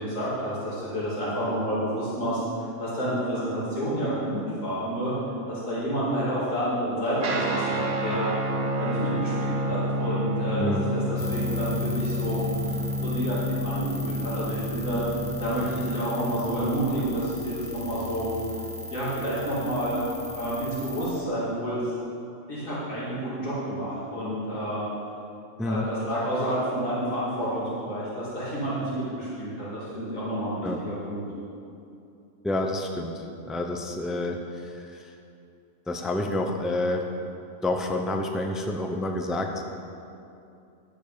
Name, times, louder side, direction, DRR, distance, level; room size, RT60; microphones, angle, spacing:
voice 1, 0.0-5.1 5.5-8.3 8.8-10.8 11.1-15.0 15.4-18.2 18.9-20.0 20.3-21.9 22.5-24.8 25.6-31.2, equal, 85° left, -9 dB, 3.0 m, -29 dB
Guitar, 7.2-17.0, equal, 70° right, 1.5 m, -30 dB
voice 2, 10.6-10.9 25.6-25.9 30.6-30.8 32.4-35.1 35.9-37.1 37.6-39.6, left 1 dB, ahead, 3 dB, 0.5 m, -29 dB
sound 1, 11.2-21.1, left 2 dB, 30° left, 0.9 m, -38 dB
10.5 x 7.2 x 6.8 m, 2.6 s
omnidirectional pair, 1.3 m